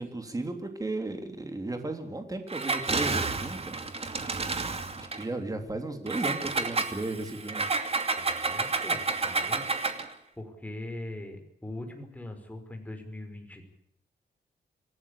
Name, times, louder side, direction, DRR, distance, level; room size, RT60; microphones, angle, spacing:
voice 1, 0.0-3.7 5.0-7.7, right 2 dB, 20° right, 6 dB, 3.4 m, -35 dB
Engine, 2.5-5.2 6.1-10.1, right 3 dB, 35° right, 2.7 m, -30 dB
voice 2, 8.2-10.1 10.4-13.8, left 1 dB, 10° left, 4 dB, 5.6 m, -41 dB
27.0 x 17.5 x 8.6 m, 0.71 s
wide cardioid pair, 145°, 17 cm